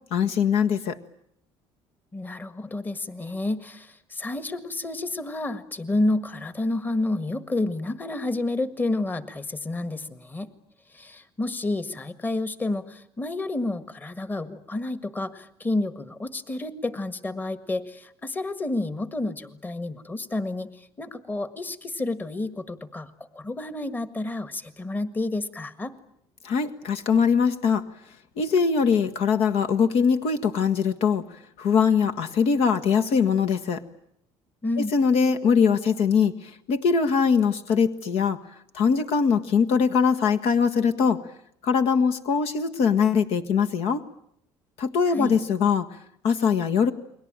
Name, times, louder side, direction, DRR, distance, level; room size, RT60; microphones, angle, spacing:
voice 1, 0.1-1.0 26.4-27.8 28.4-31.2 31.6-33.8 34.8-36.3 36.7-38.4 38.7-41.2 41.6-44.0 44.8-45.9 46.2-46.9, left 6 dB, 65° left, 7 dB, 1.6 m, -22 dB
voice 2, 2.1-10.5 10.9-25.9 34.6-34.9 45.1-45.4, left 2 dB, 15° left, 11 dB, 1.7 m, -30 dB
30.0 x 22.0 x 8.9 m, 0.71 s
cardioid pair, 120°, 11 cm